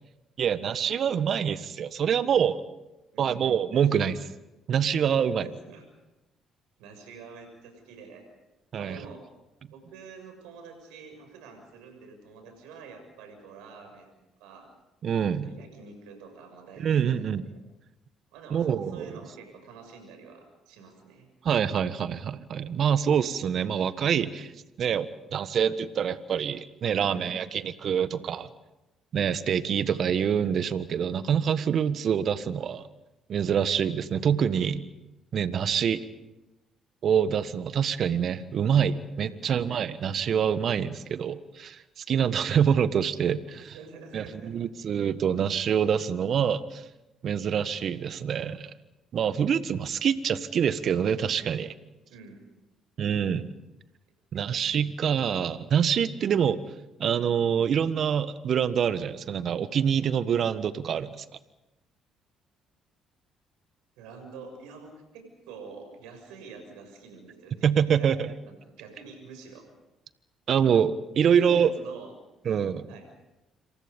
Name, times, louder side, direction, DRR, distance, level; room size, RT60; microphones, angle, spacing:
voice 1, 0.4-2.6 3.2-4.2 4.7-5.5 8.7-9.0 15.0-15.5 16.8-17.4 18.5-19.1 21.4-24.5 24.8-28.5 29.1-32.9 33.3-34.8 35.3-36.0 37.0-43.7 44.1-46.8 47.2-48.7 49.1-51.7 53.0-53.5 54.3-56.6 57.0-61.2 67.6-68.3 70.5-71.7 72.4-72.9, right 8 dB, 55° right, 14 dB, 1.4 m, -26 dB
voice 2, 5.4-5.8 6.8-8.3 8.7-9.2 9.7-14.1 14.4-14.7 15.4-17.6 18.3-21.3 26.9-27.3 39.3-39.6 43.7-44.5 52.1-52.4 64.0-69.7 71.2-72.1 72.9-73.1, right 4 dB, 80° right, 5 dB, 6.8 m, -47 dB
27.5 x 26.0 x 5.4 m, 0.99 s
hypercardioid pair, 55°, 0 cm